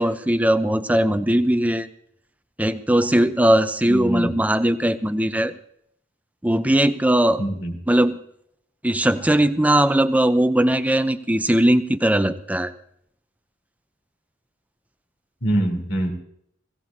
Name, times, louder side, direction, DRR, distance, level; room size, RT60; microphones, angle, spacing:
voice 1, 0.0-1.9 2.6-5.5 6.4-7.4 7.9-8.2 8.8-12.7, right 1 dB, 10° right, 11 dB, 0.6 m, -19 dB
voice 2, 3.9-4.4 7.4-7.7 15.4-16.1, right 1 dB, 85° left, 1 dB, 3.6 m, -24 dB
21.0 x 17.0 x 2.8 m, 0.70 s
head